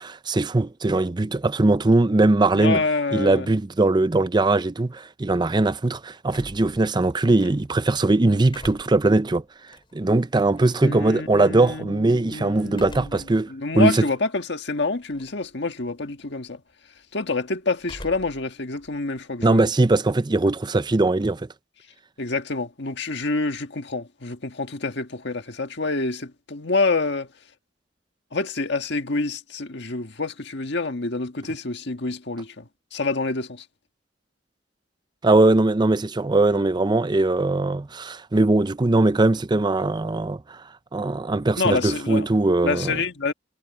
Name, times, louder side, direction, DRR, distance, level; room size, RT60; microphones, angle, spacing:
voice 1, 0.0-2.8 3.1-9.4 9.9-14.1 19.4-21.5 35.2-40.6 40.9-43.0, right 2 dB, 25° right, 0.5 m, -20 dB
voice 2, 2.5-3.5 10.8-16.6 17.1-19.6 22.2-27.3 28.3-33.6 41.5-42.3 42.6-43.3, left 3 dB, 65° left, 1.7 m, -27 dB
sound 1, 6.3-7.9 8.3-10.9 12.7-13.4 13.9-14.0 15.0-15.5 15.8-16.2 17.8-18.5 18.8-20.2, left 1 dB, 25° left, 6.1 m, -44 dB
head